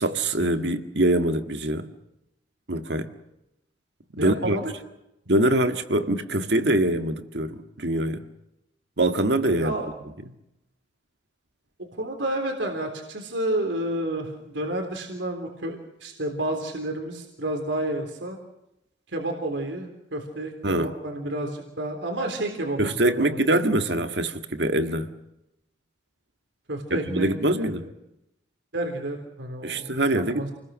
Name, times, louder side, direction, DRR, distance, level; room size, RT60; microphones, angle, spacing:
voice 1, 0.0-1.9 2.7-3.1 4.1-4.6 5.3-8.2 9.0-9.7 20.6-20.9 22.8-25.1 26.9-27.9 29.6-30.5, right 1 dB, 65° right, 2.0 m, -24 dB
voice 2, 4.2-4.6 9.6-9.9 12.0-18.4 19.1-23.4 26.7-27.7 28.7-29.8 30.1-30.5, right 1 dB, 80° right, 3.7 m, -30 dB
28.5 x 21.0 x 6.4 m
head